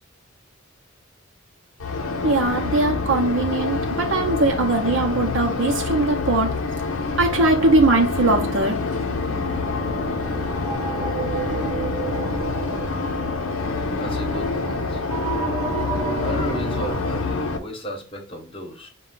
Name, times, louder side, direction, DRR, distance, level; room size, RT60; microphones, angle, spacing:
sound 1, 1.8-17.6, left 3 dB, 85° left, 0.7 m, -26 dB
voice 1, 2.2-6.6 7.2-8.7, right 2 dB, 65° right, 2 dB, 0.8 m, -20 dB
sound 2, 8.3-17.0, right 5 dB, 25° right, 0.5 m, -33 dB
voice 2, 13.9-15.0 16.0-18.9, equal, 25° left, 3 dB, 1.0 m, -34 dB
5.5 x 2.3 x 3.8 m, 0.40 s
head